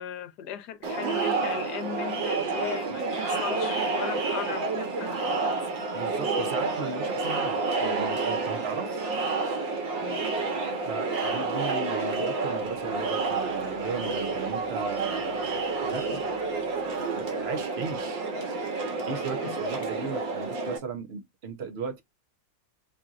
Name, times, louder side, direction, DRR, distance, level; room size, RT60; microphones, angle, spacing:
voice 1, 0.0-5.7 10.0-10.4 19.4-19.6, left 9 dB, 70° left, 1.3 m, -38 dB
Crowd, 0.8-20.8, right 3 dB, 80° right, 1.9 m, -29 dB
voice 2, 5.9-9.2 10.8-16.4 16.9-18.3 19.0-22.0, right 5 dB, 45° right, 1.0 m, -37 dB
4.4 x 3.9 x 2.5 m
omnidirectional pair, 2.0 m